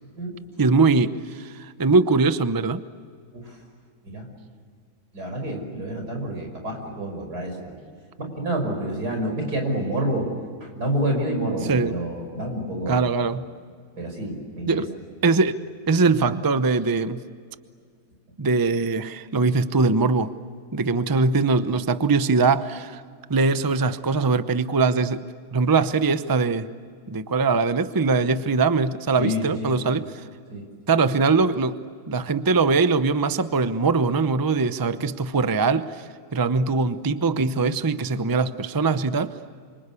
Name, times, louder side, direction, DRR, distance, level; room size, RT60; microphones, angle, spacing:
voice 1, 0.6-2.8 11.7-12.0 12.9-13.4 14.7-14.9 15.2-15.6 15.9-17.2 18.4-20.3 20.7-23.0 23.3-25.2 25.5-26.7 27.1-30.1 30.9-31.8 32.1-39.3, right 4 dB, 20° right, 12 dB, 0.5 m, -22 dB
voice 2, 5.1-7.8 8.2-10.3 10.6-13.1 14.0-14.8 29.2-29.8 30.5-30.7, right 1 dB, 90° right, 3 dB, 6.0 m, -28 dB
28.0 x 25.0 x 8.4 m, 2.1 s
omnidirectional pair, 1.6 m